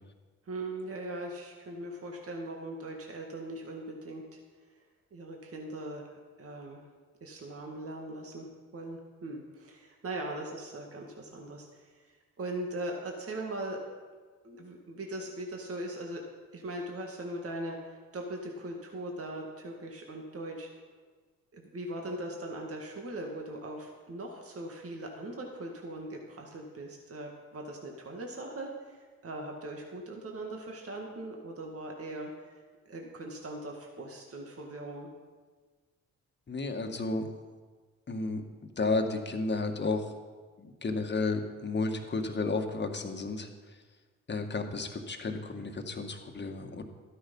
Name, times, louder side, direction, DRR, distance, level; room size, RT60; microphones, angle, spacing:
voice 1, 0.5-4.4 4.7-4.8 5.1-6.8 7.2-8.5 8.7-13.8 14.4-16.2 16.5-20.7 21.5-32.6 32.9-35.1, right 1 dB, 45° right, 1 dB, 1.9 m, -40 dB
voice 2, 36.5-37.3 38.1-38.4 38.8-40.1 40.6-43.5 44.3-46.8, left 3 dB, 35° left, 5 dB, 1.7 m, -32 dB
13.0 x 9.3 x 5.5 m, 1.4 s
supercardioid pair, 55°, 32 cm